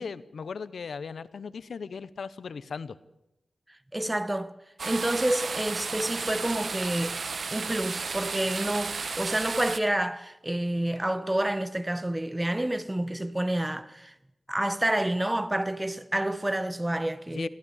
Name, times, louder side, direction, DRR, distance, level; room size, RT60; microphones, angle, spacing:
voice 1, 0.0-3.0 17.3-17.5, left 5 dB, 75° left, 0.9 m, -37 dB
voice 2, 3.9-4.5 4.8-7.2 7.5-14.1 14.5-17.5, right 1 dB, 10° right, 1.1 m, -28 dB
sound 1, 4.8-9.8, right 4 dB, 55° right, 1.1 m, -33 dB
23.0 x 16.5 x 8.3 m
wide cardioid pair, 155°, 0 cm